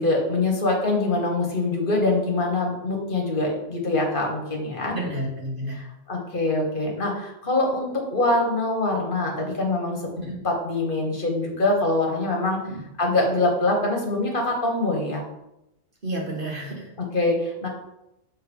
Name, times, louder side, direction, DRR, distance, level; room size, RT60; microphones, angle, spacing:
voice 1, 0.0-4.9 5.7-12.6 13.0-15.2 17.0-17.7, left 2 dB, 45° left, 1 dB, 1.6 m, -24 dB
voice 2, 4.9-5.8 10.2-10.4 12.7-12.8 16.0-16.9, right 1 dB, 45° right, -2 dB, 1.7 m, -31 dB
6.8 x 3.9 x 5.4 m, 0.88 s
omnidirectional pair, 1.2 m